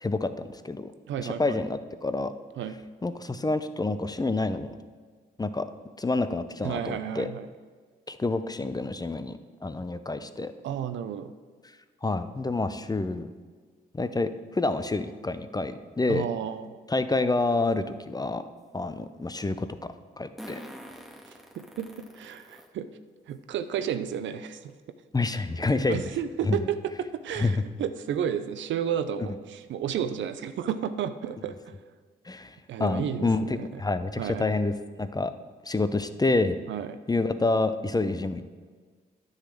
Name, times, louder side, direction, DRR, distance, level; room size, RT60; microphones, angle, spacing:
voice 1, 0.0-0.9 1.2-2.3 3.0-4.8 5.4-5.7 6.0-7.3 8.1-10.5 12.0-13.3 13.9-16.3 16.9-18.4 18.7-19.7 20.2-20.6 25.1-26.1 26.4-26.6 27.3-27.6 32.3-35.3 35.6-36.6 37.1-38.4, left 3 dB, 20° left, 11 dB, 0.6 m, -28 dB
voice 2, 1.1-1.6 2.6-2.8 6.6-7.5 10.6-11.3 16.1-16.8 21.6-22.9 23.3-24.7 25.7-31.6 32.7-33.8 34.2-34.5 36.7-37.0, right 9 dB, 65° right, 11 dB, 0.6 m, -32 dB
Fart, 17.6-17.7 20.4-22.7 23.3-23.4 24.7-24.8 25.1-25.2 25.7-25.9, equal, ahead, 1.9 m, -45 dB
10.0 x 4.1 x 7.6 m, 1.5 s
hypercardioid pair, 45°, 21 cm